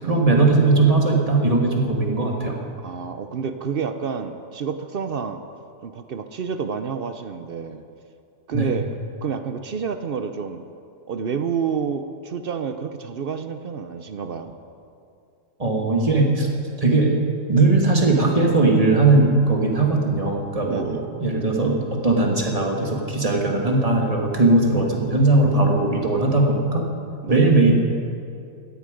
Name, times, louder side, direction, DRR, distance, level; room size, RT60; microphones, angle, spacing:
voice 1, 0.0-2.6 8.5-8.7 15.6-16.5 16.8-17.1 17.5-26.8 27.3-27.7, right 2 dB, 20° right, 0 dB, 1.8 m, -19 dB
voice 2, 2.8-5.4 5.8-7.8 8.5-8.9 9.2-10.6 11.1-14.5 20.6-21.0 27.2-27.5, right 6 dB, 70° right, 8 dB, 0.5 m, -29 dB
17.5 x 13.0 x 5.1 m, 2.5 s
omnidirectional pair, 1.8 m